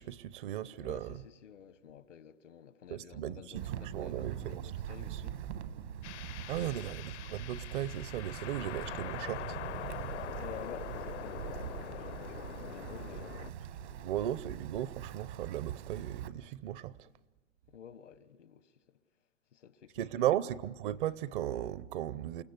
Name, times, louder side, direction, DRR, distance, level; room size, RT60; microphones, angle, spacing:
voice 1, 0.0-1.1 2.9-3.4 3.9-4.7 6.5-9.6 14.0-16.9 20.0-22.4, right 12 dB, 45° right, 0.7 m, -36 dB
voice 2, 0.8-5.4 6.6-6.9 8.3-8.4 10.4-14.2 17.7-19.0 19.5-20.4, left 8 dB, 85° left, 1.2 m, -52 dB
Wind, 3.6-16.3, right 10 dB, 65° right, 1.4 m, -43 dB
sound 1, 6.0-13.5, left 14 dB, 70° left, 0.6 m, -44 dB
29.0 x 16.5 x 8.1 m
hypercardioid pair, 130°, 36 cm